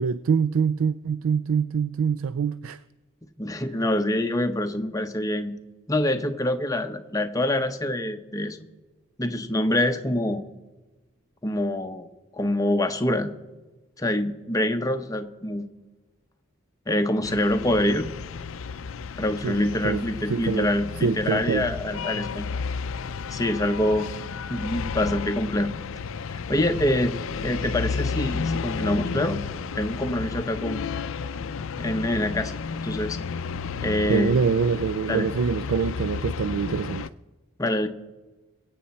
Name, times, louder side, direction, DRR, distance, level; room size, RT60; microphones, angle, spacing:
voice 1, 0.0-2.8 19.4-20.0 20.3-20.7 21.0-21.7 34.1-37.1, right 6 dB, 80° right, 0.4 m, -25 dB
voice 2, 3.2-5.5 5.9-8.6 9.2-10.4 11.4-12.1 12.3-13.3 14.0-15.7 16.9-18.1 19.2-22.5 23.3-24.1 24.5-25.7 26.3-27.1 27.4-29.4 29.7-30.8 31.8-32.5 32.8-33.2 33.8-34.4 35.1-35.3 37.6-37.9, left 1 dB, 15° left, 0.7 m, -25 dB
sound 1, 17.2-37.1, left 5 dB, 75° left, 0.5 m, -32 dB
22.5 x 8.6 x 4.2 m
head